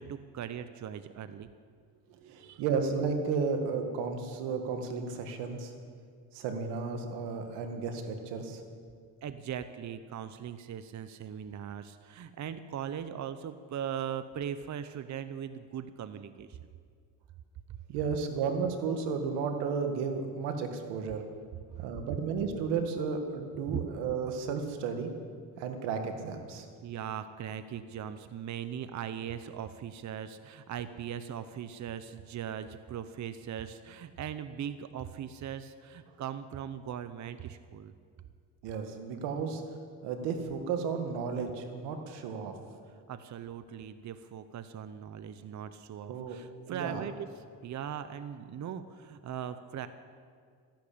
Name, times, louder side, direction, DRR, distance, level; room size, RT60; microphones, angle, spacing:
voice 1, 0.0-1.5 2.4-2.6 9.2-16.6 23.7-23.8 26.8-37.9 43.1-49.9, right 9 dB, 45° right, 12 dB, 0.8 m, -39 dB
voice 2, 2.1-5.7 6.3-8.6 17.9-21.2 21.8-25.1 25.6-26.7 38.6-39.6 40.0-42.5 46.1-46.4 46.7-47.0, right 5 dB, 90° right, 6 dB, 1.9 m, -33 dB
14.5 x 11.5 x 8.6 m, 2.1 s
cardioid pair, 90°, 40 cm